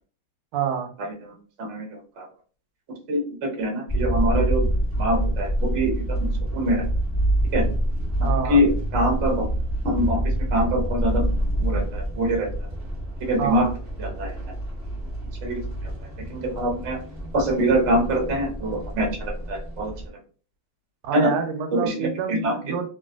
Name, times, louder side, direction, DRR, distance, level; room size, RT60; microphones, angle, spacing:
voice 1, 0.5-0.9 8.2-8.6 13.4-13.7 21.0-22.9, right 7 dB, 80° right, 6 dB, 1.4 m, -27 dB
voice 2, 1.6-2.3 3.1-4.7 5.0-6.8 7.5-7.6 8.2-9.4 9.8-10.2 10.5-11.2 11.6-12.5 13.2-13.7 14.0-14.3 15.4-15.9 16.3-17.0 17.3-19.9 21.1-21.3 21.7-22.6, equal, 50° right, 0 dB, 0.8 m, -24 dB
sound 1, 3.9-20.1, right 1 dB, 10° right, 0.9 m, -27 dB
3.0 x 2.8 x 2.3 m, 0.40 s
omnidirectional pair, 2.4 m